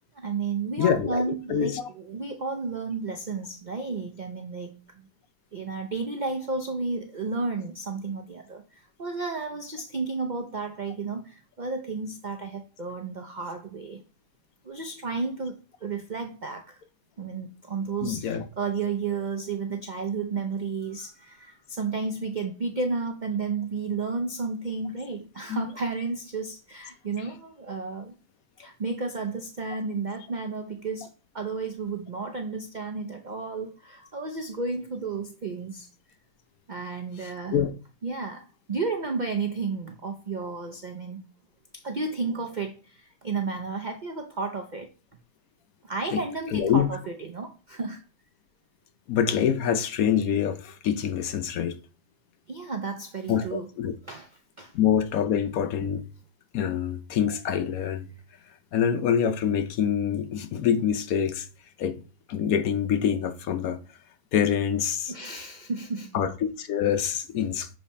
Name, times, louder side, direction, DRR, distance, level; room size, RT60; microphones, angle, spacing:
voice 1, 0.1-5.1 5.5-14.0 14.6-16.8 17.2-28.2 28.6-31.1 31.3-35.9 36.7-37.6 38.0-38.4 38.7-41.2 41.7-44.9 45.8-48.0 52.5-53.7 54.0-54.7 65.1-66.3, right 4 dB, 75° right, 0.4 m, -32 dB
voice 2, 0.8-1.2 1.5-1.8 18.0-18.4 25.5-25.6 37.5-37.7 46.1-46.2 46.5-46.9 49.1-51.8 53.3-53.9 54.7-56.0 56.5-58.1 58.7-61.5 61.8-61.9 62.3-63.8 64.3-65.1 66.1-67.7, left 8 dB, 70° left, 1.0 m, -25 dB
7.1 x 3.2 x 4.2 m
omnidirectional pair, 1.8 m